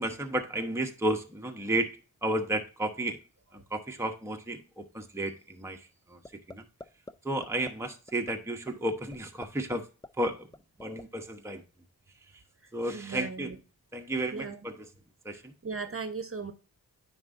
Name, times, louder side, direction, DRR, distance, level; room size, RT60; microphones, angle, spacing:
voice 1, 0.0-3.2 3.5-6.2 6.5-6.6 7.2-9.9 10.2-10.5 10.8-11.6 12.7-13.5 13.9-14.9 15.2-15.5, right 1 dB, 5° right, 3 dB, 0.9 m, -33 dB
sound 1, 6.3-6.6 6.8-7.1 7.4-7.7 8.1-8.3 8.7-8.8 9.1-9.8 10.0-11.0, left 2 dB, 10° left, 0.4 m, -43 dB
voice 2, 12.6-13.6 14.3-14.6 15.3-16.5, right 4 dB, 35° right, 9 dB, 0.9 m, -38 dB
9.4 x 5.0 x 2.6 m, 0.33 s
cardioid pair, 60°, 39 cm